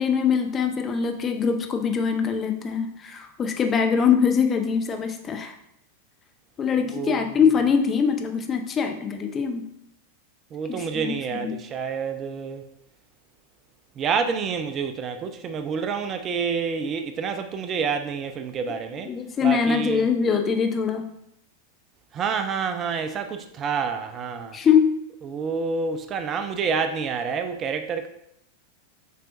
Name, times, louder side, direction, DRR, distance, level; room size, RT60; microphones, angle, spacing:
voice 1, 0.0-5.5 6.6-9.6 10.7-11.5 19.1-21.1 24.5-25.0, left 6 dB, 25° left, 0.5 m, -23 dB
voice 2, 6.9-7.4 10.5-12.6 14.0-19.1 19.4-20.0 22.1-24.6 25.2-28.1, right 6 dB, 30° right, 0.4 m, -28 dB
5.6 x 3.4 x 2.5 m
figure-of-eight pair, 90°, 0 cm